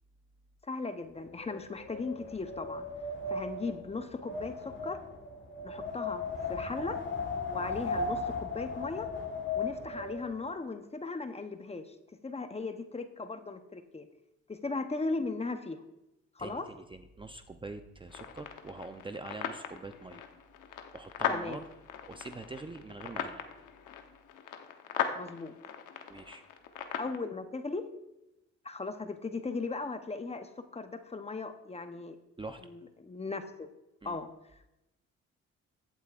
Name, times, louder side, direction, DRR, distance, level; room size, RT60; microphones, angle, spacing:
voice 1, 0.7-2.9 3.3-5.0 5.6-7.0 7.5-9.1 9.5-12.0 12.2-14.1 14.5-15.8 16.4-16.6 21.3-21.6 25.1-25.5 27.0-27.8 28.6-32.2 32.6-33.7 34.0-34.3, left 3 dB, 20° left, 8 dB, 0.8 m, -37 dB
Wind, 1.1-10.4, left 3 dB, 40° left, 1.5 m, -37 dB
voice 2, 16.4-20.2 20.9-21.7 22.1-23.4 26.1-26.4 32.4-32.6 34.0-34.2, right 2 dB, 15° right, 7 dB, 0.5 m, -44 dB
sound 1, 18.1-27.2, left 8 dB, 85° left, 1.0 m, -39 dB
15.5 x 8.2 x 2.4 m, 0.92 s
cardioid pair, 90°, 30 cm